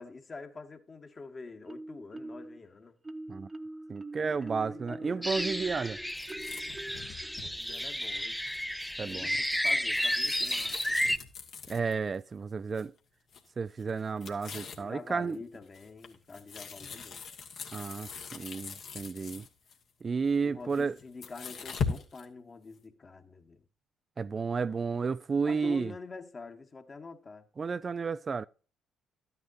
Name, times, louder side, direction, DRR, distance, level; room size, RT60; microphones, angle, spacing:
voice 1, 0.0-3.0 4.2-5.3 7.4-8.4 9.0-11.0 14.7-17.2 20.4-23.7 25.4-27.5, left 4 dB, 35° left, 1.6 m, -46 dB
Marimba xylophone, 1.7-2.6 3.0-8.5, right 2 dB, 20° right, 1.0 m, -44 dB
voice 2, 3.9-6.0 9.0-9.4 11.7-12.9 13.6-15.4 17.7-19.5 20.0-21.0 24.2-25.9 27.6-28.4, right 5 dB, 40° right, 0.4 m, -32 dB
sound 1, 5.2-11.2, equal, 5° left, 0.6 m, -32 dB
sound 2, 6.1-12.2 12.7-13.0 13.3-13.5 13.8-14.9 15.3-19.8 20.6-22.2, left 5 dB, 60° left, 1.6 m, -41 dB
12.5 x 9.6 x 2.6 m
hypercardioid pair, 50°, 0 cm